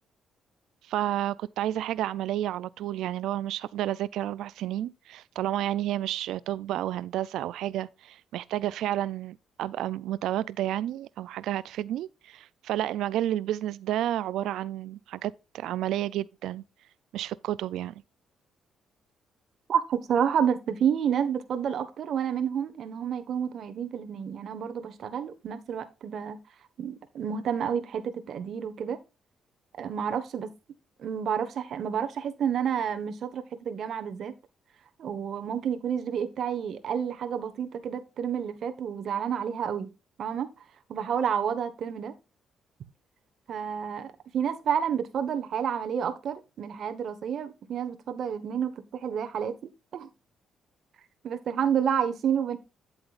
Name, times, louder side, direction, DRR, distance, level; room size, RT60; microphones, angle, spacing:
voice 1, 0.9-16.6 17.1-17.9, right 13 dB, 85° right, 0.3 m, -31 dB
voice 2, 19.7-26.4 26.8-29.0 29.8-30.5 31.0-34.3 35.0-39.9 40.2-40.5 40.9-42.1 43.5-48.7 49.0-50.1 51.2-52.6, right 8 dB, 65° right, 1.3 m, -29 dB
9.7 x 7.8 x 2.5 m
cardioid pair, 90°, 0 cm